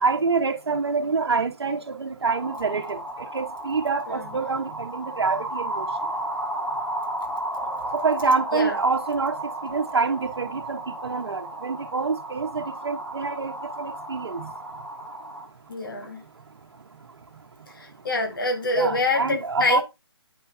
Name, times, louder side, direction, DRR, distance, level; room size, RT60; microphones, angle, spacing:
voice 1, 0.0-5.9 7.9-9.3 9.6-14.5 18.7-19.8, right 4 dB, 80° right, 1.2 m, -26 dB
sound 1, 2.3-15.5, right 1 dB, ahead, 0.6 m, -33 dB
voice 2, 15.7-16.2 17.7-19.8, left 2 dB, 55° left, 1.9 m, -26 dB
9.1 x 5.5 x 2.7 m
hypercardioid pair, 165°, 13 cm